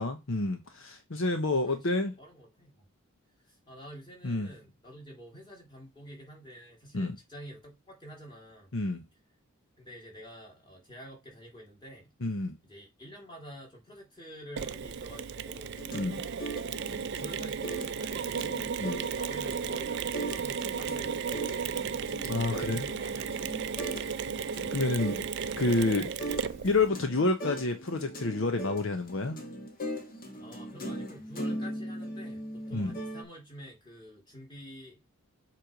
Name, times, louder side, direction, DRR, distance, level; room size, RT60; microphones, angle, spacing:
voice 1, 0.0-2.1 4.2-4.5 6.9-7.2 8.7-9.0 12.2-12.6 15.9-16.2 18.8-19.0 22.2-22.8 24.7-25.3 25.6-26.1 26.6-29.4 32.7-32.9, left 2 dB, 60° left, 0.8 m, -29 dB
voice 2, 2.2-2.9 3.5-8.7 9.8-12.1 12.6-15.8 16.5-18.6 19.1-21.7 22.4-24.0 30.4-35.0, equal, 20° left, 3.1 m, -49 dB
Mechanisms, 14.6-26.9, right 6 dB, 50° right, 0.5 m, -34 dB
sound 1, 15.6-33.2, right 1 dB, 40° left, 1.5 m, -40 dB
7.5 x 3.2 x 5.1 m
head